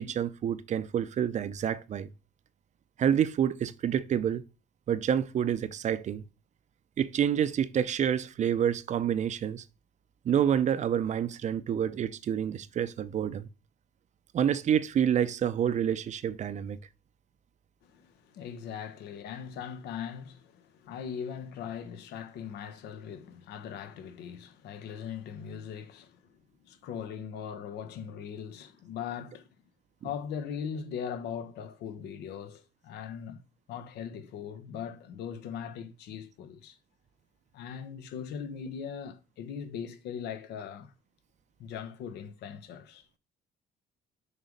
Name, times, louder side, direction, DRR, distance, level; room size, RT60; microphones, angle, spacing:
voice 1, 0.0-2.1 3.0-4.4 4.9-6.2 7.0-9.6 10.2-13.5 14.3-16.8, right 9 dB, 45° right, 0.6 m, -28 dB
voice 2, 17.8-29.5 30.0-33.4 33.7-36.8 37.5-40.9 41.6-43.2, left 7 dB, 80° left, 1.1 m, -40 dB
6.5 x 3.9 x 5.3 m
cardioid pair, 110°, 17 cm